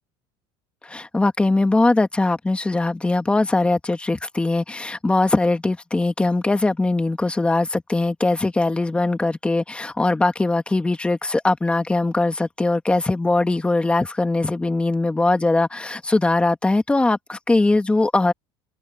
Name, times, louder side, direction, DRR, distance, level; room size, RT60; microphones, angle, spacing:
voice 1, 0.8-18.3, left 2 dB, 10° left, 1.8 m, -21 dB
cardioid pair, 140°, 12 cm